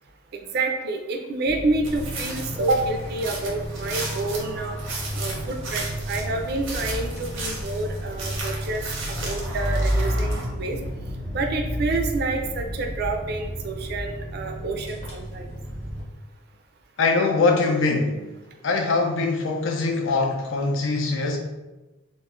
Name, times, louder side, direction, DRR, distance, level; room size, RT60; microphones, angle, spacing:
voice 1, 0.3-4.8 5.1-10.8 11.3-15.5, right 3 dB, 55° right, 4 dB, 0.3 m, -28 dB
sound 1, 1.5-16.0, equal, 35° left, 0.7 m, -31 dB
sound 2, 1.8-10.5, right 2 dB, 85° right, 0.7 m, -35 dB
voice 2, 17.0-18.2 18.6-21.4, left 3 dB, 80° left, 2 dB, 0.5 m, -22 dB
2.2 x 2.0 x 3.5 m, 1.1 s
head